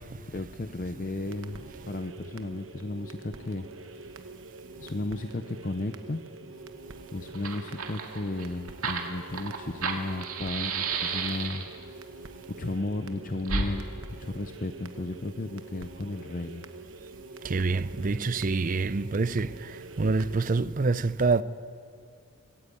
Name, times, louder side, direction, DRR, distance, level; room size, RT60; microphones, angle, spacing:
voice 1, 0.3-1.6 1.9-4.2 4.8-6.2 7.1-12.0 12.5-13.9 14.2-16.7, left 2 dB, 40° left, 0.6 m, -34 dB
sound 1, 1.2-20.4, right 3 dB, 65° right, 1.1 m, -45 dB
Fire, 7.0-7.1 7.3-11.8 13.4-13.7, right 5 dB, 85° right, 2.1 m, -32 dB
voice 2, 17.4-21.4, right 3 dB, 40° right, 0.5 m, -26 dB
25.5 x 13.5 x 8.5 m
head